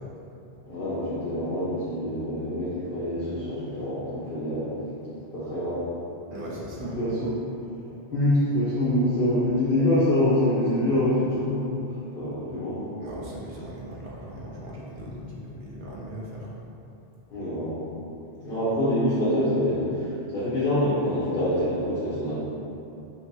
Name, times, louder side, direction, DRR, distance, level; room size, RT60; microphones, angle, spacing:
voice 1, 0.7-4.7 5.3-5.8 6.8-7.3 8.1-12.8 17.3-17.8 18.4-22.4, left 1 dB, 55° left, -12 dB, 1.1 m, -25 dB
voice 2, 6.3-7.0 13.0-16.7, equal, 60° right, -5 dB, 0.7 m, -38 dB
5.6 x 2.2 x 2.7 m, 2.9 s
omnidirectional pair, 1.1 m